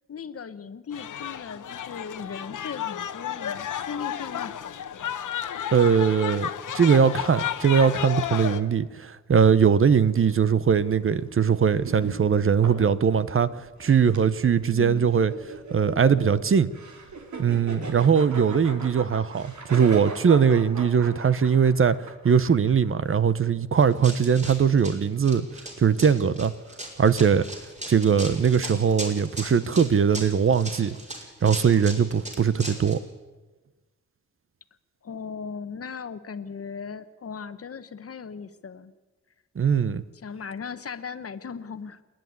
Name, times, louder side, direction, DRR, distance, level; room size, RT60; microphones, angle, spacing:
voice 1, 0.1-5.1 14.6-15.1 35.0-38.9 40.1-42.0, left 6 dB, 50° left, 12 dB, 1.1 m, -38 dB
sound 1, 0.9-8.6, left 9 dB, 85° left, 1.1 m, -32 dB
voice 2, 5.7-13.5 13.8-15.3 15.7-16.7 17.4-22.0 22.2-25.5 25.8-26.5 27.0-27.4 27.9-31.0 31.4-33.0 39.6-40.0, right 7 dB, 45° right, 15 dB, 0.9 m, -21 dB
sound 2, 9.6-23.2, right 4 dB, 70° right, 3.4 m, -40 dB
Run, 23.8-33.0, right 1 dB, 25° right, 5.3 m, -38 dB
27.5 x 10.5 x 9.5 m, 1.3 s
wide cardioid pair, 105°, 30 cm